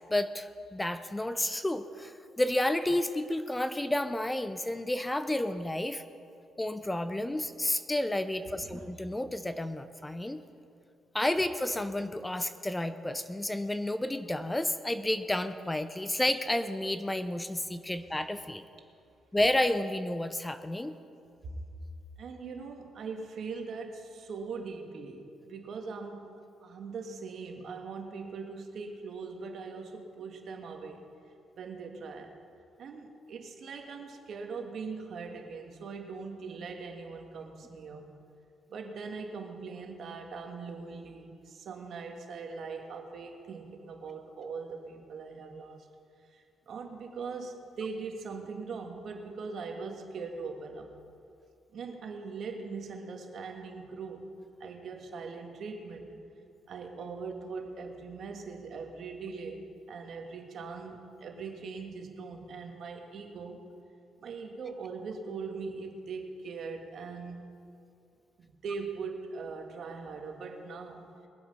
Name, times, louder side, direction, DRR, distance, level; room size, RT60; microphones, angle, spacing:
voice 1, 0.1-6.0 6.6-10.4 11.1-18.6 19.3-20.9, left 1 dB, 10° left, 11 dB, 0.6 m, -31 dB
voice 2, 22.2-31.1 31.6-32.4 32.8-38.2 38.7-45.9 46.2-51.0 51.7-54.3 54.6-56.1 56.7-63.6 64.2-67.4 68.4-71.1, right 4 dB, 60° right, 3 dB, 1.8 m, -41 dB
22.0 x 7.9 x 5.4 m, 2.5 s
cardioid pair, 90°, 0 cm